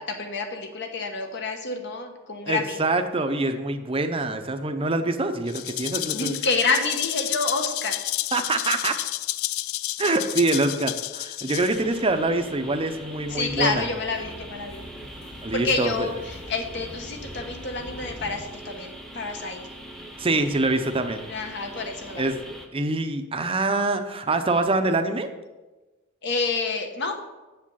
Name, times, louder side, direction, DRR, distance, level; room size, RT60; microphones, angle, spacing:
voice 1, 0.0-2.8 6.1-8.0 13.3-14.9 15.5-19.6 21.3-22.3 26.2-27.1, left 3 dB, 55° left, 5 dB, 1.2 m, -28 dB
voice 2, 2.5-6.3 8.3-9.0 10.0-13.9 15.4-16.1 20.2-21.2 22.2-22.4 22.7-25.3, right 2 dB, 25° right, 7 dB, 0.6 m, -25 dB
Rattle (instrument), 5.5-12.0, left 16 dB, 75° left, 0.3 m, -30 dB
sound 1, 11.5-22.7, right 1 dB, 5° left, 0.9 m, -42 dB
sound 2, 13.3-18.4, equal, 35° left, 2.0 m, -44 dB
7.5 x 7.3 x 5.6 m, 1.1 s
head